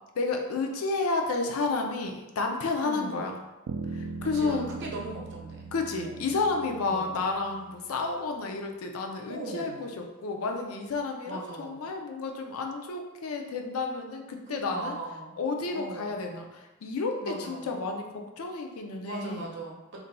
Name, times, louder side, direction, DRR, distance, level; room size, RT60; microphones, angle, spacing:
voice 1, 0.1-3.4 3.9-4.7 5.7-15.0 15.4-19.5, left 3 dB, 85° left, 3 dB, 0.5 m, -31 dB
voice 2, 2.8-3.3 4.2-5.7 6.0-6.3 6.8-7.2 9.3-9.8 11.3-11.9 14.5-15.4 15.7-16.2 17.2-17.7 19.0-20.0, right 2 dB, 60° right, -2 dB, 0.7 m, -39 dB
Bass guitar, 3.7-8.1, right 4 dB, 75° right, 0.3 m, -40 dB
2.6 x 2.2 x 4.0 m, 1.1 s
head